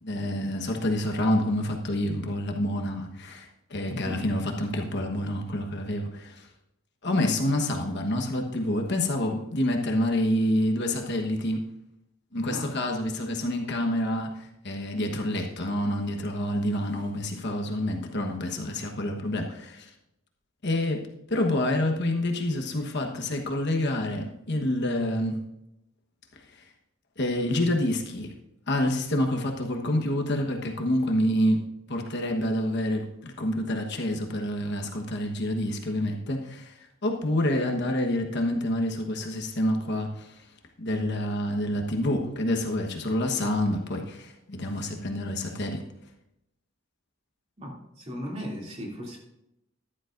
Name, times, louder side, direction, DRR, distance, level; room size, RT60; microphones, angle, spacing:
voice 1, 0.0-6.5 7.0-11.6 12.3-19.9 20.6-25.4 27.2-28.3 28.7-36.7 37.0-40.4 40.8-45.8, left 1 dB, 55° left, 2 dB, 1.2 m, -28 dB
voice 2, 3.9-4.3 12.5-12.7 47.6-49.2, equal, 30° right, -2 dB, 2.8 m, -37 dB
14.5 x 11.0 x 2.6 m, 0.84 s
head